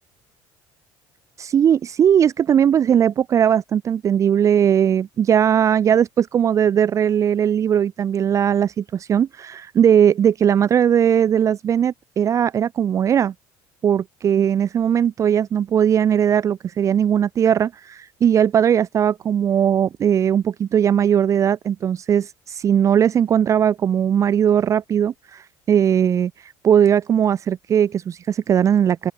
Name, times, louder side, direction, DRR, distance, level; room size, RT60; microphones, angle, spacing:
voice 1, 1.4-13.3 13.8-29.1, right 9 dB, 35° right, 0.6 m, -19 dB
open air
cardioid pair, 120°, 9 cm